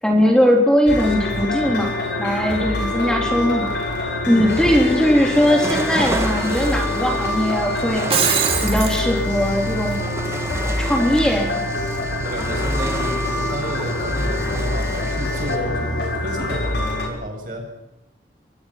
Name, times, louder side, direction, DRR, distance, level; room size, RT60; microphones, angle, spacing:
voice 1, 0.0-3.7 4.3-8.1 8.6-10.0 10.8-11.6, equal, 5° left, 0 dB, 3.4 m, -19 dB
sound 1, 0.9-17.1, left 2 dB, 90° left, 7.6 m, -25 dB
voice 2, 4.2-4.6 12.2-17.6, equal, 50° right, 2 dB, 7.5 m, -31 dB
sound 2, 4.5-15.6, right 1 dB, 15° right, 1.6 m, -32 dB
Shatter, 7.9-9.0, right 7 dB, 30° right, 3.0 m, -21 dB
27.0 x 23.0 x 5.9 m, 0.93 s
head